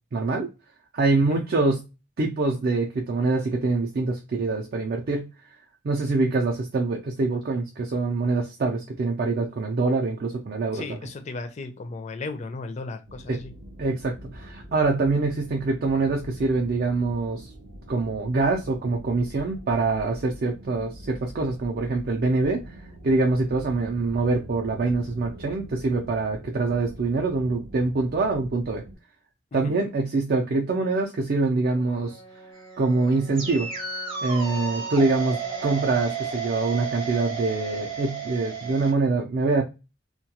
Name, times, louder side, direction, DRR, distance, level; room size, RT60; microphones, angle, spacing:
voice 1, 0.1-0.5 0.9-1.8 2.2-5.3 5.8-10.8 13.3-13.4 13.8-17.5 17.9-22.6 23.0-28.8 29.5-32.2 32.8-33.7 34.2-39.6, right 3 dB, 50° right, 1 dB, 0.4 m, -24 dB
voice 2, 10.7-13.5 29.5-29.8, left 3 dB, 35° left, 8 dB, 0.4 m, -35 dB
sound 1, 13.1-28.9, equal, 90° right, 0.8 m, -44 dB
Brass instrument, 31.7-36.0, right 3 dB, 85° left, 0.6 m, -46 dB
sound 2, 32.5-38.9, right 6 dB, 30° right, 0.7 m, -32 dB
2.2 x 2.2 x 2.7 m, 0.27 s
head